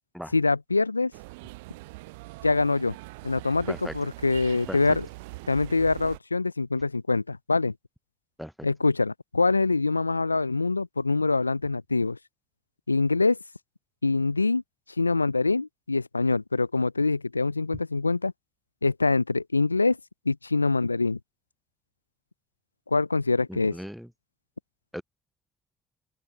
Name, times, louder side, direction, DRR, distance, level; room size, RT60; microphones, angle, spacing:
voice 1, 0.3-1.1 2.4-3.0 3.2-5.1 5.5-7.7 8.6-12.2 12.9-13.4 14.0-14.6 15.0-18.3 18.8-20.0 20.3-21.2 22.9-23.8, left 3 dB, 90° left, 0.3 m, -24 dB
sound 1, 1.1-6.2, right 23 dB, 75° right, 0.4 m, -42 dB
voice 2, 23.5-24.1 24.9-25.0, equal, ahead, 0.6 m, -37 dB
open air
figure-of-eight pair, 45°, 0 cm